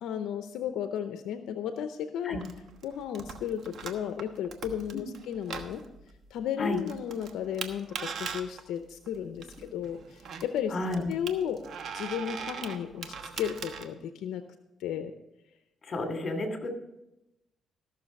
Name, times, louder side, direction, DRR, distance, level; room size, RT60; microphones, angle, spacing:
voice 1, 0.0-2.4 2.8-5.8 6.3-10.8 11.1-11.6 11.9-14.4 14.8-15.1, left 9 dB, 85° left, 8 dB, 0.6 m, -34 dB
sound 1, 2.4-13.8, right 6 dB, 65° right, 1.2 m, -41 dB
voice 2, 10.7-11.1 15.8-16.7, left 2 dB, 40° left, 5 dB, 2.6 m, -32 dB
15.0 x 6.6 x 5.3 m, 0.88 s
cardioid pair, 90°, 0 cm